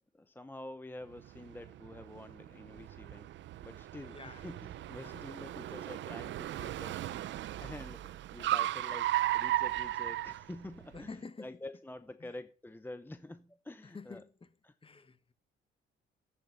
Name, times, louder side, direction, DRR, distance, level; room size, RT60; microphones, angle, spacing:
voice 1, 0.1-3.3 3.6-7.2 7.6-8.0 8.3-11.1 11.4-14.2 14.6-14.7, left 1 dB, 10° left, 0.8 m, -47 dB
Car, 1.2-11.0, right 14 dB, 70° right, 0.6 m, -36 dB
voice 2, 4.1-4.5 5.0-5.3 6.2-6.3 10.9-11.5 12.2-12.4 13.8-14.5 14.8-15.3, left 4 dB, 25° left, 1.4 m, -49 dB
12.0 x 9.2 x 6.7 m
cardioid pair, 90°, 20 cm